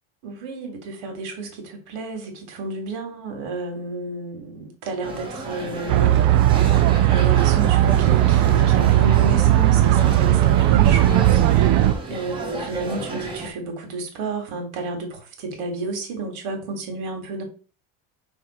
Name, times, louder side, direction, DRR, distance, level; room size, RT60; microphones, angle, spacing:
voice 1, 0.2-6.1 7.1-11.4 12.1-17.4, right 3 dB, 80° right, 2.5 m, -31 dB
sound 1, 5.0-13.5, right 2 dB, 15° right, 1.2 m, -33 dB
sound 2, 5.9-11.9, right 13 dB, 50° right, 0.4 m, -17 dB
6.0 x 3.7 x 4.4 m
cardioid pair, 170°, 34 cm